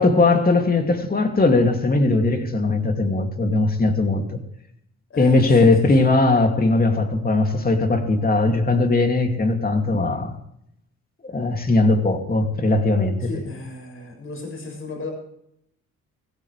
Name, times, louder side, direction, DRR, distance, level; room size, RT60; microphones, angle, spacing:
voice 1, 0.0-4.4 5.2-10.3 11.2-13.3, left 2 dB, 30° left, 2.7 m, -19 dB
voice 2, 5.1-5.7 6.0-6.1 10.0-10.3 13.2-15.1, left 3 dB, 45° left, 6.8 m, -36 dB
18.0 x 16.0 x 3.4 m
cardioid pair, 90°, 30 cm